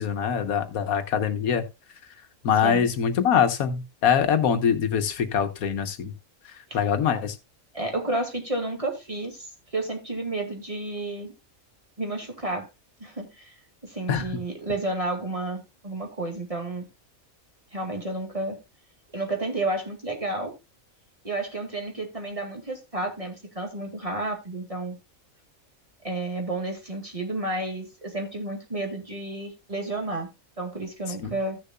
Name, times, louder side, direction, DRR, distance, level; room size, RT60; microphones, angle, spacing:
voice 1, 0.0-1.6 2.4-6.1 6.7-7.4 14.1-14.3 31.2-31.3, left 7 dB, 90° left, 1.4 m, -23 dB
voice 2, 7.7-11.3 12.0-12.7 13.0-13.5 13.8-16.9 17.7-18.6 19.1-20.5 21.2-25.0 26.0-30.3 30.6-31.6, right 2 dB, 25° right, 2.1 m, -31 dB
16.0 x 6.7 x 2.3 m
omnidirectional pair, 1.5 m